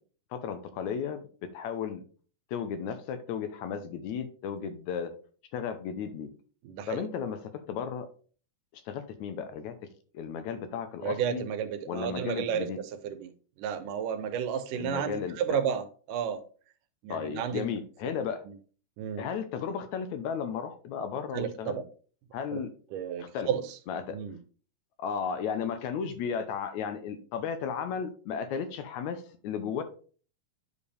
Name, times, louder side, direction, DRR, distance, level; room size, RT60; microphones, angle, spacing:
voice 1, 0.3-2.0 2.5-5.1 5.5-6.3 6.9-8.1 8.7-9.7 10.1-11.5 11.9-12.8 14.7-15.6 17.1-18.4 19.2-21.8 22.3-22.7 23.2-23.5 23.9-24.2 25.0-29.8, left 7 dB, 75° left, 2.1 m, -34 dB
voice 2, 6.6-7.1 11.0-13.3 13.6-16.4 17.0-17.7 18.0-18.1 18.5-18.6 19.0-19.3 21.3-21.9 22.5-22.6 22.9-23.8 24.1-24.4, right 8 dB, 85° right, 2.4 m, -32 dB
9.5 x 5.1 x 3.3 m
omnidirectional pair, 3.6 m